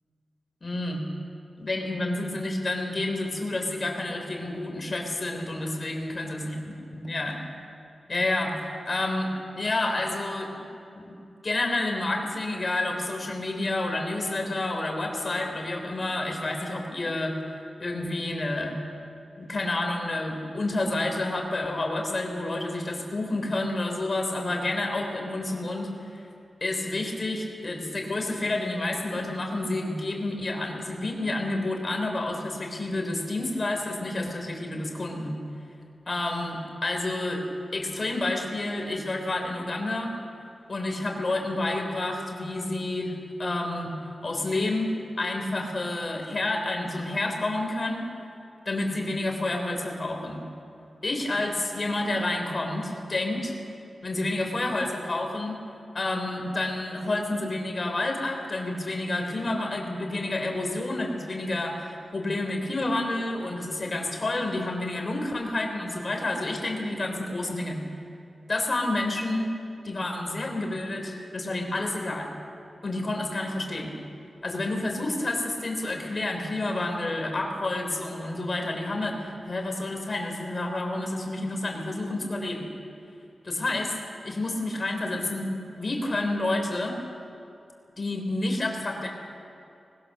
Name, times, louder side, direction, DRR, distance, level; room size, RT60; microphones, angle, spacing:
voice 1, 0.6-1.0 1.6-7.4 8.1-8.6 8.9-10.5 11.0-11.2 11.4-17.4 17.8-18.8 19.4-26.3 26.6-35.4 36.1-37.4 37.7-40.1 40.7-43.9 44.2-48.1 48.7-50.4 51.0-53.5 54.0-55.6 55.9-67.8 68.5-69.5 69.8-72.3 72.8-74.0 74.4-82.7 83.4-84.0 84.2-85.5 85.8-87.0 88.0-89.1, left 2 dB, 35° left, 2 dB, 3.6 m, -29 dB
24.5 x 20.5 x 6.8 m, 2.7 s
wide cardioid pair, 160°, 0 cm